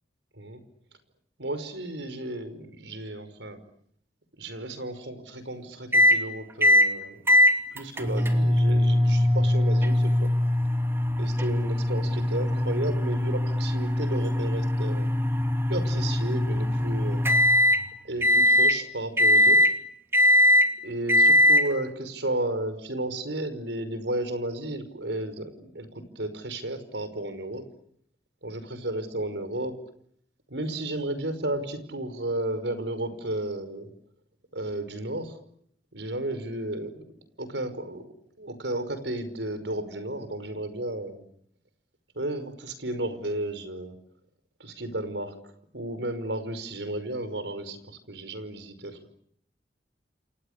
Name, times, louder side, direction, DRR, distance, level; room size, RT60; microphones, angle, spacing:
voice 1, 1.4-3.6 4.4-7.2 7.7-10.3 11.2-15.1 15.7-17.3 18.1-19.6 20.8-27.7 28.4-29.8 30.5-33.9 34.5-35.4 35.9-37.0 37.4-41.2 42.2-44.0 44.6-45.3 45.7-49.1, right 1 dB, 80° right, 12 dB, 5.4 m, -33 dB
sound 1, 5.9-6.2 6.6-6.9 7.3-17.8 18.2-18.8 19.2-19.7 20.1-20.7 21.1-21.6, left 1 dB, 15° right, 2.7 m, -21 dB
29.0 x 28.5 x 6.7 m, 0.69 s
head